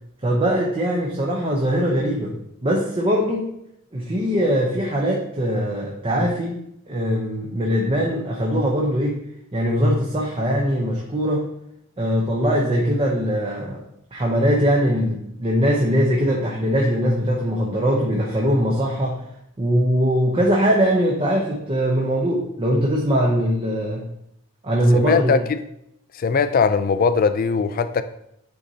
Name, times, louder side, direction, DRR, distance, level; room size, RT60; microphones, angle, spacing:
voice 1, 0.2-2.3 2.6-3.5 3.9-9.2 9.5-11.5 12.0-13.8 14.1-19.2 19.6-24.1 24.6-25.4, equal, 25° right, 0.7 m, -21 dB
voice 2, 24.9-25.6 26.1-28.0, left 5 dB, 40° left, 0.3 m, -20 dB
9.3 x 4.0 x 2.7 m
head